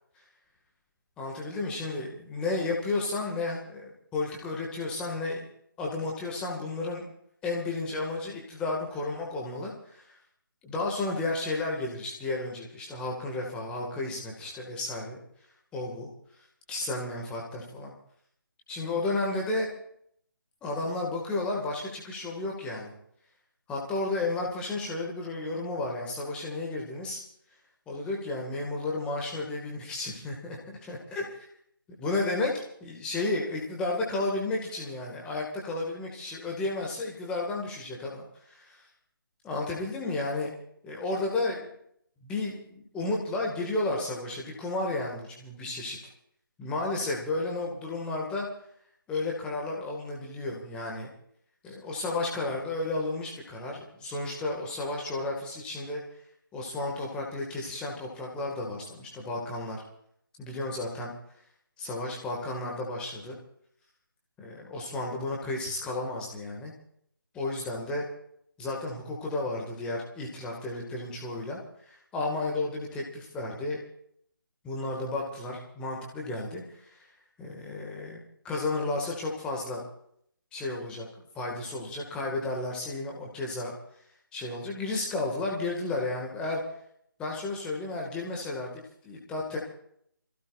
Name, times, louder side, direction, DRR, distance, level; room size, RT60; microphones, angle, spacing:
voice 1, 1.2-5.5 5.8-7.0 7.4-10.2 10.6-15.2 15.7-16.1 16.7-17.9 18.7-19.7 20.6-22.9 23.7-27.2 27.9-31.5 32.0-38.9 39.4-40.5 40.8-41.7 42.2-46.0 46.6-48.5 49.1-51.1 51.6-56.0 56.5-59.8 60.4-61.1 61.8-63.4 64.4-66.7 67.3-68.0 68.6-73.8 74.6-77.1 77.4-79.8 80.5-81.1 81.3-83.7 84.3-86.6 87.2-89.6, left 2 dB, 10° left, -1 dB, 2.1 m, -32 dB
27.0 x 16.5 x 2.6 m, 0.67 s
figure-of-eight pair, 150°, 12 cm